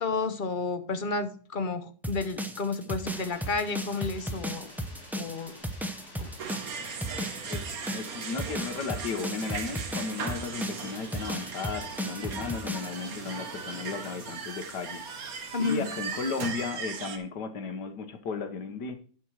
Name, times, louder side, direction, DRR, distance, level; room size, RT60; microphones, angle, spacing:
voice 1, 0.0-4.7 5.2-5.6 6.2-6.3 15.5-15.9, left 4 dB, 40° left, 9 dB, 0.9 m, -31 dB
sound 1, 2.0-12.9, equal, ahead, 0.4 m, -35 dB
sound 2, 3.0-16.5, left 1 dB, 65° left, 5.8 m, -50 dB
sound 3, 6.4-17.2, right 6 dB, 60° right, 1.5 m, -38 dB
voice 2, 7.2-19.0, left 5 dB, 80° left, 8 dB, 1.7 m, -35 dB
9.9 x 6.1 x 4.7 m, 0.42 s
omnidirectional pair, 1.8 m